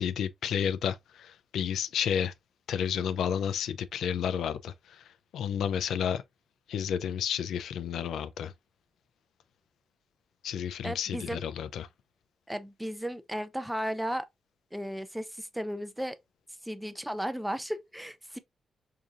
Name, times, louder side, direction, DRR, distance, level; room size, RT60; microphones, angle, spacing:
voice 1, 0.0-2.3 2.7-5.0 5.3-6.2 6.7-8.5 10.4-11.9, left 8 dB, 85° left, 0.3 m, -31 dB
voice 2, 10.8-11.4 12.5-14.3 14.7-16.2 16.6-18.4, equal, 5° right, 0.4 m, -35 dB
4.8 x 2.7 x 2.4 m
cardioid pair, 110°, 0 cm